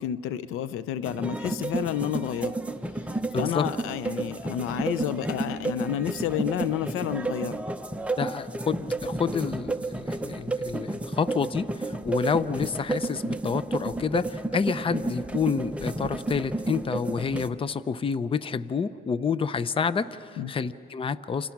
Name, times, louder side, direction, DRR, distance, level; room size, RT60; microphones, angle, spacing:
voice 1, 0.0-2.5 3.1-7.6 20.4-20.5, left 10 dB, 90° left, 15 dB, 0.8 m, -30 dB
sound 1, 1.0-17.5, right 2 dB, 5° right, 0.9 m, -31 dB
voice 2, 3.3-3.7 8.2-21.5, left 6 dB, 25° left, 15 dB, 0.6 m, -29 dB
29.5 x 27.5 x 6.1 m, 2.6 s
cardioid pair, 120°, 21 cm